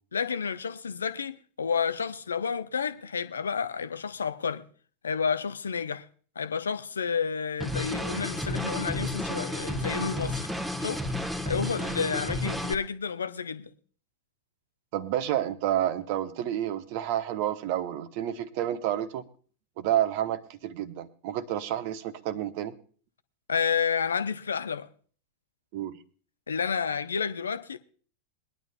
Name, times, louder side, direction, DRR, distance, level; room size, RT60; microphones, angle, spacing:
voice 1, 0.1-4.6 5.0-6.1 6.4-10.4 10.8-11.0 11.5-13.7 23.5-24.9 26.5-27.8, left 6 dB, 70° left, 0.7 m, -30 dB
sound 1, 7.6-12.7, left 1 dB, 5° right, 1.2 m, -32 dB
voice 2, 14.9-19.2 19.8-22.7 25.7-26.0, right 11 dB, 45° right, 1.0 m, -29 dB
22.5 x 11.0 x 2.2 m
figure-of-eight pair, 90°, 0 cm